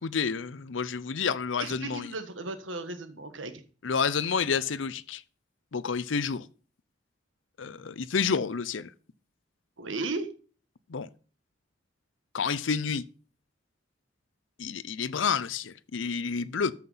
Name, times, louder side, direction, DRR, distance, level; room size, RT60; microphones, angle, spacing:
voice 1, 0.0-2.1 3.8-5.2 5.7-6.4 7.6-8.9 10.9-11.1 12.3-13.0 14.6-16.7, left 6 dB, 85° left, 0.6 m, -29 dB
voice 2, 1.6-3.6 9.8-10.3, right 3 dB, 90° right, 1.5 m, -35 dB
13.5 x 5.8 x 5.6 m
head